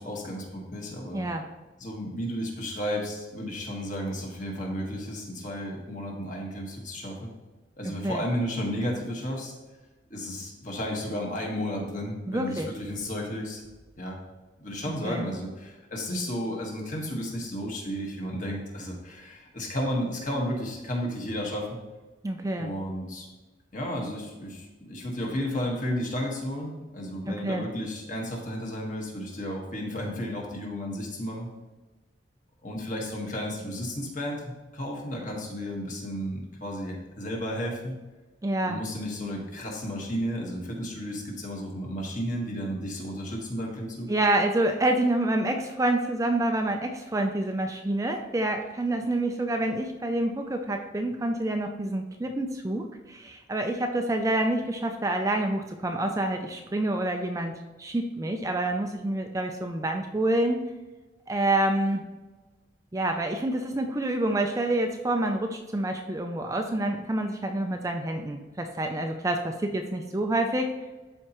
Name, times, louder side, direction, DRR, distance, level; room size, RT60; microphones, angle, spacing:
voice 1, 0.0-1.3 1.8-7.3 7.8-9.5 10.1-13.6 14.0-14.2 14.6-21.8 22.6-23.3 23.7-31.5 32.6-38.0 38.6-44.1, equal, 45° left, -1 dB, 1.5 m, -33 dB
voice 2, 1.1-1.4 7.8-8.2 12.3-12.7 14.9-15.3 22.2-22.7 27.3-27.6 38.4-38.8 44.1-60.6 61.3-62.0 62.9-70.7, right 1 dB, 15° right, 4 dB, 0.4 m, -27 dB
12.0 x 4.4 x 3.0 m, 1.2 s
head